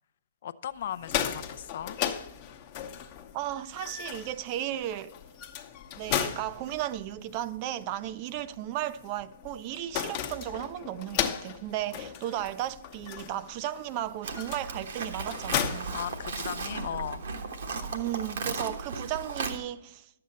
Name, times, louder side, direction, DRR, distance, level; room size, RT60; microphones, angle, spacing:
voice 1, 0.4-2.0 15.9-17.2, left 10 dB, 55° left, 0.4 m, -37 dB
sound 1, 0.8-16.8, left 9 dB, 35° left, 0.8 m, -36 dB
voice 2, 3.3-5.1 6.0-16.0 17.7-20.1, right 12 dB, 35° right, 0.4 m, -35 dB
Livestock farm animals working animals, 14.2-19.6, right 4 dB, 65° right, 1.1 m, -36 dB
11.0 x 7.6 x 4.2 m
figure-of-eight pair, 125°, 0 cm